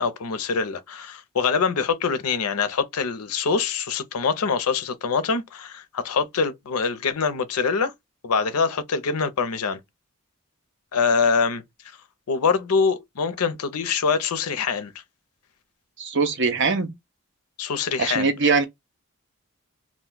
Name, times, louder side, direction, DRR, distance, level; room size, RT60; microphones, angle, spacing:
voice 1, 0.0-7.9 8.2-9.8 10.9-11.6 12.3-14.9 17.6-18.3, left 5 dB, 85° left, 0.6 m, -24 dB
voice 2, 16.0-16.9 18.0-18.6, right 4 dB, 55° right, 0.7 m, -22 dB
2.4 x 2.2 x 3.7 m
head